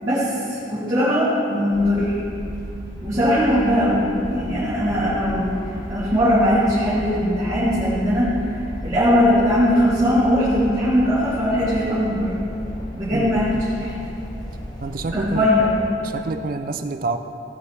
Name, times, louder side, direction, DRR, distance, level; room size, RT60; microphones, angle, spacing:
voice 1, 0.0-2.2 3.0-5.4 5.9-8.5 8.8-12.3 12.9-13.5 13.8-14.0 15.1-15.7, equal, 20° right, -13 dB, 3.2 m, -20 dB
sound 1, 1.7-15.9, equal, 20° left, 1.2 m, -34 dB
voice 2, 13.1-13.7 14.8-15.5 16.0-17.2, right 3 dB, 45° right, 8 dB, 0.4 m, -28 dB
17.0 x 9.5 x 3.4 m, 2.8 s
head